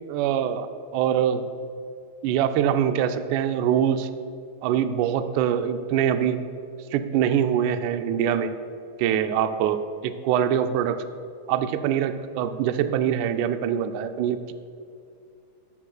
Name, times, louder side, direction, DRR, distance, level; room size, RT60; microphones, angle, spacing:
voice 1, 0.1-0.7 0.9-1.5 2.2-4.1 4.6-6.4 6.9-8.5 9.0-11.0 11.5-14.5, right 9 dB, 80° right, 9 dB, 1.9 m, -24 dB
12.5 x 10.0 x 2.3 m, 2.5 s
omnidirectional pair, 3.6 m